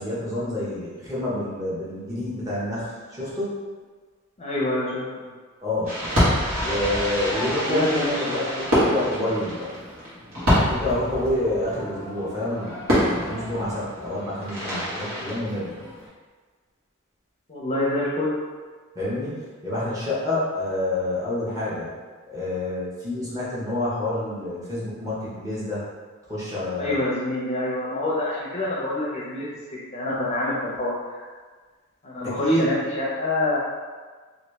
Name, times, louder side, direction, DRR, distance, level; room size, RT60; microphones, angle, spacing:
voice 1, 0.0-3.5 5.6-5.9 6.6-9.7 10.5-15.8 18.9-19.4 19.6-21.9 22.3-25.8 26.3-27.0 32.4-32.7, left 1 dB, 15° right, -9 dB, 1.0 m, -28 dB
voice 2, 4.4-5.3 7.6-8.5 17.5-18.3 26.7-29.5 29.9-31.2 32.0-33.6, left 2 dB, 30° left, -6 dB, 0.6 m, -26 dB
Fireworks, 5.8-16.1, equal, 65° right, 1.4 m, -26 dB
3.1 x 2.6 x 3.2 m, 1.5 s
head